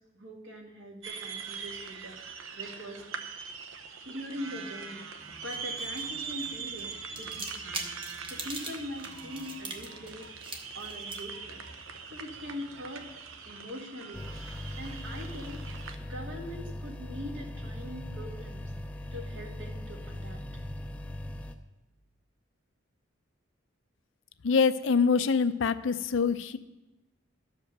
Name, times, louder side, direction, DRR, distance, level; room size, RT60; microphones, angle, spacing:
voice 1, 0.0-3.0 4.1-5.0 5.4-7.9 8.3-10.3 10.7-11.6 12.1-13.1 13.4-14.3 14.8-15.6 16.0-18.7 19.1-20.4, left 1 dB, 70° right, 1 dB, 1.9 m, -42 dB
sound 1, 1.0-16.0, right 6 dB, 85° right, 0.8 m, -42 dB
sound 2, 5.2-13.6, right 2 dB, 25° right, 0.9 m, -45 dB
sound 3, 14.1-21.5, left 1 dB, 5° left, 0.4 m, -39 dB
voice 2, 24.4-26.6, left 5 dB, 70° left, 12 dB, 0.5 m, -25 dB
13.0 x 5.2 x 6.5 m, 1.0 s
head